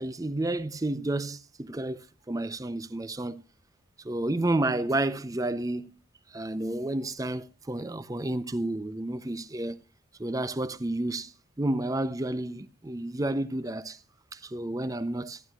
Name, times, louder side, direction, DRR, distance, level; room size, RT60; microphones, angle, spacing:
voice 1, 0.0-2.0 2.3-3.4 4.0-6.0 6.3-9.8 10.2-14.0 14.3-15.4, right 1 dB, 15° right, 0.5 m, -31 dB
14.5 x 11.0 x 2.3 m
head